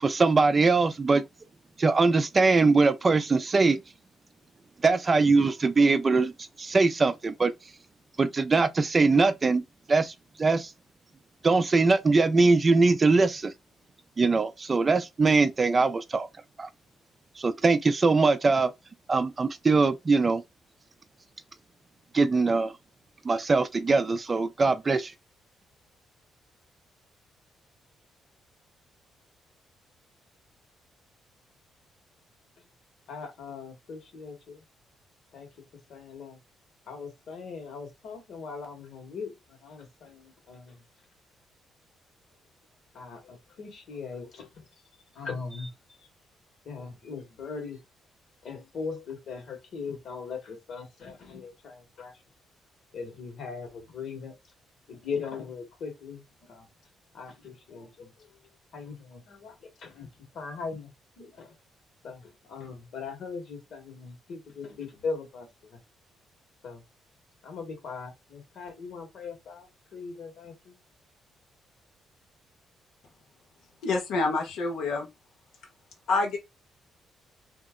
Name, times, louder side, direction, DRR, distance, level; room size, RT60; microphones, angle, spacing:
voice 1, 0.0-1.2 1.8-3.8 4.8-6.3 6.6-7.5 8.2-9.6 9.9-10.7 11.4-13.5 14.2-16.3 16.6-16.7 17.4-18.7 19.1-20.4 22.1-22.7 23.2-25.1, right 3 dB, 30° right, 0.4 m, -22 dB
voice 2, 33.1-34.6 35.3-35.5 35.9-36.4 36.9-39.3 39.6-40.7 42.9-44.5 45.1-45.7 46.6-47.8 48.4-52.1 52.9-54.3 54.9-56.2 56.5-56.7 57.1-58.1 58.7-59.5 59.8-60.1 60.3-60.9 61.2-61.5 62.0-62.2 62.5-65.5 66.6-66.8 67.4-70.7, left 5 dB, 65° left, 1.6 m, -39 dB
voice 3, 73.8-75.1 76.1-76.4, left 3 dB, 85° left, 1.0 m, -27 dB
2.8 x 2.0 x 3.6 m
cardioid pair, 90°, 0 cm